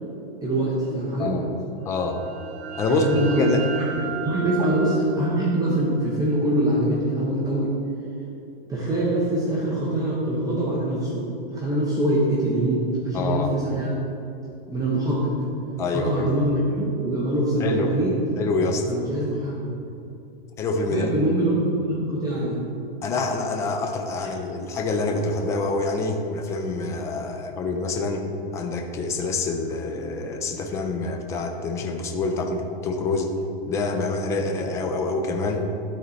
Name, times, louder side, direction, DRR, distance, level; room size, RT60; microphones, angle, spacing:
voice 1, 0.4-1.4 2.9-3.5 3.8-7.7 8.7-11.2 11.5-14.0 14.7-15.3 15.9-18.2 18.9-19.7 20.9-22.6, right 1 dB, 10° right, -6 dB, 0.9 m, -24 dB
voice 2, 1.9-2.2 2.7-3.6 4.6-4.7 13.1-13.5 15.8-16.3 17.6-17.9 18.4-18.8 20.6-21.1 23.0-28.2 28.5-33.3 33.7-35.6, left 3 dB, 10° left, 3 dB, 0.3 m, -26 dB
sound 1, 1.9-7.4, right 5 dB, 80° right, 0.7 m, -36 dB
12.5 x 4.2 x 4.2 m, 2.7 s
hypercardioid pair, 150°, 31 cm